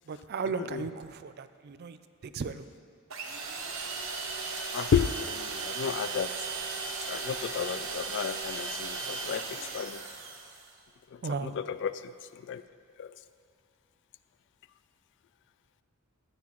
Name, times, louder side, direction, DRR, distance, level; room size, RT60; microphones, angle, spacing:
voice 1, 0.1-2.0 2.2-2.6 11.2-11.6, right 5 dB, 50° right, 11 dB, 0.4 m, -35 dB
sound 1, 3.1-10.7, right 4 dB, 65° right, 1.0 m, -36 dB
voice 2, 4.7-6.3 7.1-10.0 11.4-12.1 12.4-12.6 13.0-13.1, left 7 dB, 55° left, 14 dB, 0.3 m, -32 dB
13.0 x 9.4 x 3.0 m, 2.1 s
head